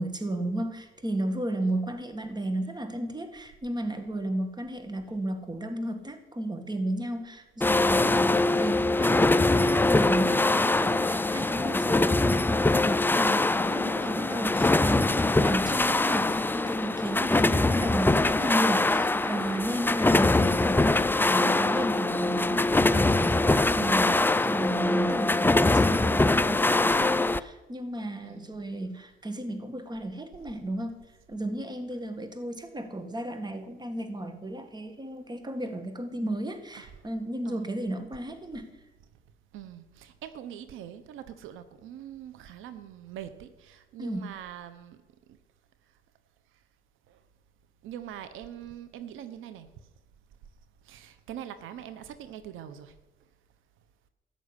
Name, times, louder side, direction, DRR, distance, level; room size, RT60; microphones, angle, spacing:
voice 1, 0.0-31.0 31.3-38.7 44.0-44.3, right 1 dB, 20° right, 8 dB, 2.0 m, -33 dB
sound 1, 7.6-27.4, left 2 dB, 10° left, 0.5 m, -23 dB
voice 2, 28.2-28.6 36.7-36.9 37.4-37.7 39.5-45.0 45.3-45.4 47.1-47.2 47.8-49.7 50.8-52.9, right 10 dB, 90° right, 12 dB, 1.0 m, -43 dB
14.5 x 6.4 x 9.8 m, 1.1 s
cardioid pair, 90°, 20 cm